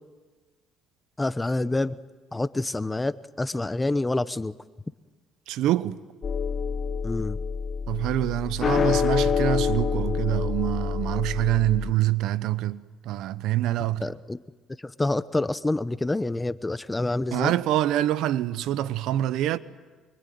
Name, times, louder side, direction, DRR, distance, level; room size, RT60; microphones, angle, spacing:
voice 1, 1.2-2.0 2.3-4.5 7.0-7.4 14.0-14.4 14.8-17.5, left 2 dB, 15° left, 0.9 m, -27 dB
voice 2, 5.5-6.0 7.9-14.1 17.3-19.6, right 13 dB, 80° right, 0.9 m, -25 dB
sound 1, 6.2-11.9, left 6 dB, 40° left, 1.2 m, -27 dB
25.0 x 23.5 x 9.4 m
cardioid pair, 90°, 0 cm